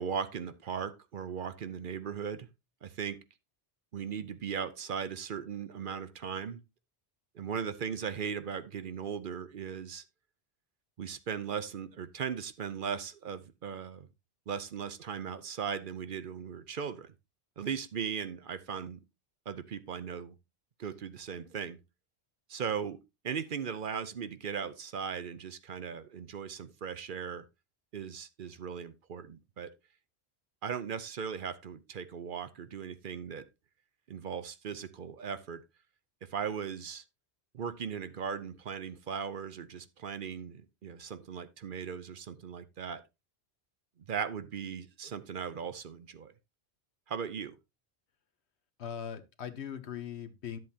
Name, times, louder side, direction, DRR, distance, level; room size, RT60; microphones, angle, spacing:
voice 1, 0.0-2.5 2.8-3.2 3.9-6.6 7.3-10.0 11.0-14.1 14.5-17.1 17.6-19.0 19.5-20.3 20.8-21.8 22.5-23.0 23.2-27.4 27.9-29.7 30.6-33.4 34.1-35.6 36.2-37.0 37.5-43.0 44.1-46.3 47.1-47.6, right 7 dB, 55° right, 0.8 m, -38 dB
voice 2, 48.8-50.6, left 8 dB, 80° left, 1.2 m, -40 dB
11.0 x 7.7 x 2.8 m
omnidirectional pair, 1.1 m